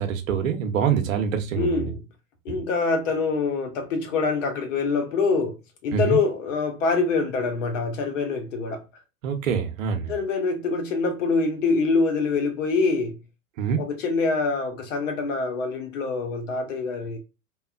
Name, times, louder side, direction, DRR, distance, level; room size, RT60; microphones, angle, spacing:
voice 1, 0.0-1.9 2.5-2.6 5.9-6.2 9.2-10.1 13.6-13.8, right 7 dB, 70° right, 0.8 m, -25 dB
voice 2, 1.5-2.0 2.4-5.6 5.8-8.8 10.1-13.2 13.8-17.2, left 4 dB, 65° left, 1.0 m, -25 dB
2.8 x 2.3 x 2.3 m
hypercardioid pair, 105°, 41 cm